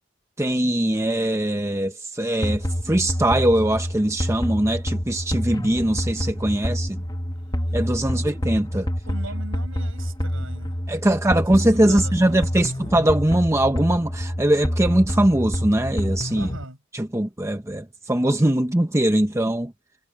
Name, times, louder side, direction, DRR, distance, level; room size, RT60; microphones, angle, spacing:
voice 1, 0.4-7.0 7.7-8.9 10.9-16.5 16.9-19.7, right 1 dB, 15° right, 0.8 m, -21 dB
sound 1, 2.4-16.6, equal, 20° left, 1.6 m, -27 dB
voice 2, 9.1-10.8 11.1-12.9 16.4-16.8, right 1 dB, 65° right, 7.6 m, -40 dB
head